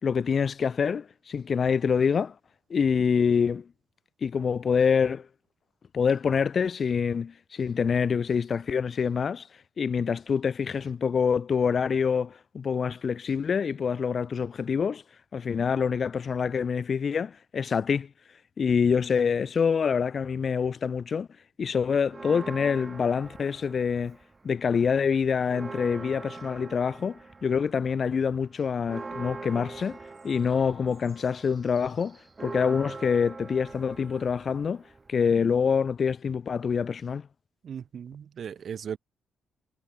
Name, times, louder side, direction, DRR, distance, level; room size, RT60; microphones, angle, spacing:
voice 1, 0.0-2.3 2.7-3.7 4.2-5.3 5.9-9.5 9.8-15.0 15.3-18.1 18.6-21.3 21.6-24.2 24.4-30.0 30.2-34.8 35.1-37.3, left 6 dB, 35° left, 4.6 m, -26 dB
Church bell, 22.1-24.5 24.8-24.9 25.2-35.3, right 3 dB, 20° right, 7.9 m, -43 dB
voice 2, 37.6-39.0, right 8 dB, 45° right, 2.7 m, -37 dB
cardioid pair, 160°, 0 cm